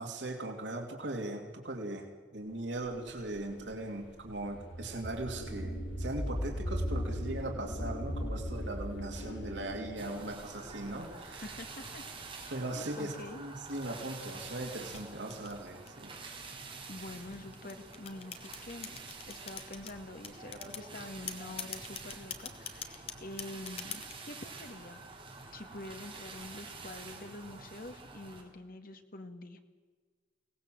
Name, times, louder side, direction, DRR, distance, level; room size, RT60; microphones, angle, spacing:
voice 1, 0.0-11.5 12.5-16.1, right 2 dB, 80° right, 2 dB, 2.7 m, -39 dB
sound 1, 2.9-11.8, equal, 85° left, 3.0 m, -38 dB
sound 2, 10.0-28.4, right 3 dB, 30° right, 5.1 m, -48 dB
voice 2, 11.4-12.1 12.4-13.4 16.9-18.9 19.3-25.0 25.5-29.6, left 2 dB, 55° left, 6 dB, 2.0 m, -46 dB
sound 3, 13.7-16.1 16.8-19.9 20.2-20.9 21.3-24.2, left 6 dB, 35° left, 2.1 m, -43 dB
24.0 x 18.5 x 7.7 m, 1.5 s
head